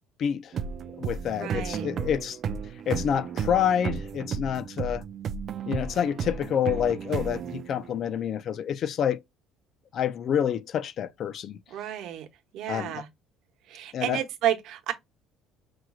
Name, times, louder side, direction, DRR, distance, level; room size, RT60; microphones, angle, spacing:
voice 1, 0.2-0.5 1.0-2.4 2.9-5.0 5.7-9.2 9.9-11.6 12.7-13.0 13.9-14.2, left 9 dB, 45° left, 0.3 m, -28 dB
sound 1, 0.5-8.2, right 6 dB, 40° right, 0.3 m, -33 dB
voice 2, 1.4-1.9 11.7-12.3 12.5-13.1 13.7-14.9, right 11 dB, 60° right, 0.9 m, -31 dB
6.0 x 3.0 x 2.3 m
cardioid pair, 155°, 0 cm